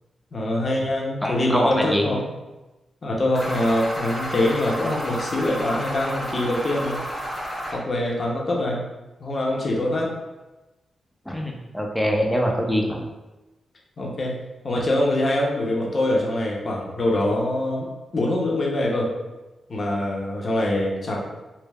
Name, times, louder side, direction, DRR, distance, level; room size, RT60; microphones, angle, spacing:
voice 1, 0.3-2.2 3.0-7.0 7.7-8.8 9.2-10.1 14.0-14.4 14.6-17.9 18.1-19.1 19.7-21.2, left 1 dB, 50° left, -2 dB, 0.7 m, -24 dB
voice 2, 1.2-2.1 11.3-13.1, equal, 5° left, 1 dB, 0.5 m, -24 dB
sound 1, 3.3-7.7, equal, 25° right, 1.3 m, -31 dB
3.3 x 2.0 x 2.3 m, 1.1 s
cardioid pair, 55°, 0 cm